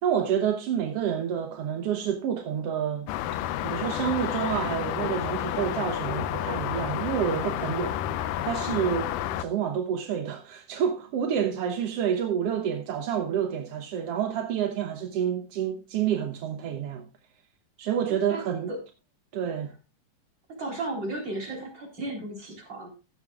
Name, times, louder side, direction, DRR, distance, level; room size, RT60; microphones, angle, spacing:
voice 1, 0.0-3.1 3.6-8.0 8.4-9.1 9.4-17.0 17.8-18.7 19.3-19.7, right 8 dB, 65° right, 1.6 m, -28 dB
sound 1, 3.1-9.4, left 12 dB, 85° left, 2.4 m, -30 dB
voice 2, 20.5-22.9, right 2 dB, 30° right, 4.7 m, -34 dB
15.5 x 11.0 x 2.4 m
omnidirectional pair, 3.8 m